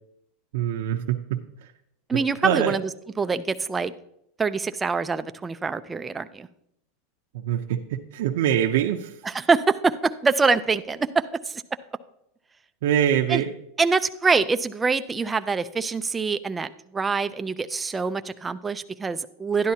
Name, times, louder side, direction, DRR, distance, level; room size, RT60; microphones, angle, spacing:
voice 1, 0.5-1.7 2.4-2.8 7.3-9.2 12.8-13.5, right 10 dB, 70° right, 2 dB, 0.6 m, -24 dB
voice 2, 2.1-2.8 3.2-3.9 4.4-6.5 9.2-11.6 13.3-13.4 13.8-19.7, right 4 dB, 10° right, 11 dB, 0.4 m, -25 dB
12.5 x 10.5 x 2.8 m, 0.77 s
supercardioid pair, 160°, 0 cm